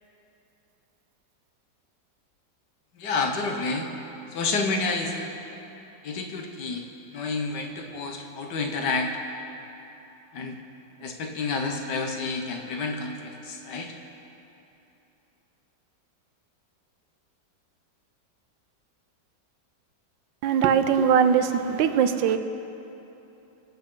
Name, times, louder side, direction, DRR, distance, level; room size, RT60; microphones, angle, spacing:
voice 1, 3.0-3.9 4.3-5.3 6.0-6.8 7.1-9.2 10.3-10.6 11.0-13.9 21.5-21.6, left 3 dB, 70° left, 1.7 m, -29 dB
voice 2, 20.4-22.4, right 7 dB, 85° right, 1.4 m, -21 dB
25.5 x 8.5 x 3.9 m
omnidirectional pair, 2.0 m